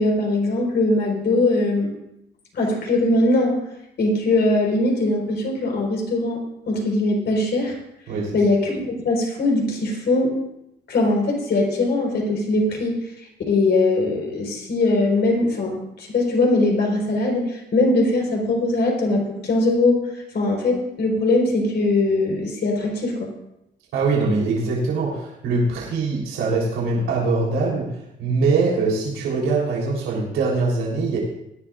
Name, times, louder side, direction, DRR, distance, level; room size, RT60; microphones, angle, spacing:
voice 1, 0.0-1.9 2.5-3.6 4.0-7.8 8.3-10.3 10.9-13.0 13.5-23.3, left 2 dB, 60° left, 0 dB, 4.5 m, -21 dB
voice 2, 23.9-27.9 28.2-31.2, right 3 dB, 90° right, -4 dB, 3.7 m, -22 dB
20.0 x 11.0 x 2.5 m, 0.82 s
cardioid pair, 90°, 20 cm